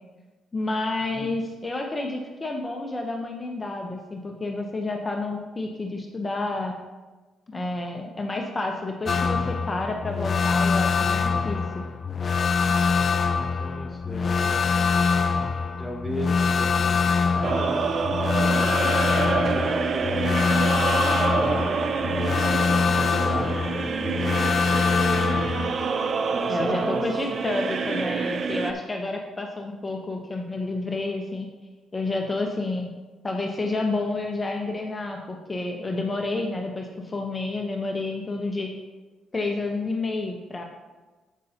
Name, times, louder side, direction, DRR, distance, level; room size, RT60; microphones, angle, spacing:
voice 1, 0.5-6.7 7.5-11.8 26.5-31.5 31.9-32.9 33.2-38.7 39.3-40.6, left 2 dB, 25° left, 1 dB, 0.8 m, -30 dB
sound 1, 9.1-25.7, left 5 dB, 45° left, 0.4 m, -24 dB
voice 2, 13.6-14.9 15.8-17.8 18.1-18.8 19.0-20.4 21.1-22.6 22.9-24.1 26.3-27.2, equal, 10° right, 1 dB, 1.5 m, -36 dB
sound 2, 17.4-28.7, right 5 dB, 50° right, 0.5 m, -27 dB
13.5 x 5.5 x 2.8 m, 1.2 s
cardioid pair, 90°, 0 cm